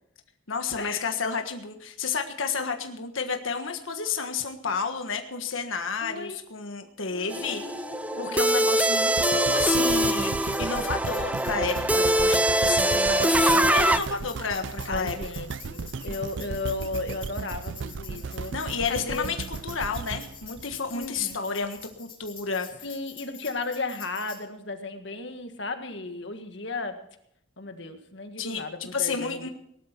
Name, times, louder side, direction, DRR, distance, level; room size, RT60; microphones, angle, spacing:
voice 1, 0.5-7.6 8.2-15.1 18.5-22.7 28.4-29.5, left 5 dB, 75° left, 5 dB, 1.5 m, -31 dB
voice 2, 6.0-6.4 7.1-8.4 14.9-18.5 18.9-19.3 20.9-21.4 22.8-27.0 27.6-29.5, left 3 dB, 60° left, 7 dB, 1.7 m, -35 dB
sound 1, 7.3-14.0, right 1 dB, 5° right, 0.5 m, -23 dB
Tambourine, 8.5-24.4, left 7 dB, 25° left, 3.8 m, -46 dB
sound 2, 9.2-21.4 21.9-22.0, right 5 dB, 60° right, 0.5 m, -36 dB
19.0 x 12.0 x 4.5 m, 0.74 s
head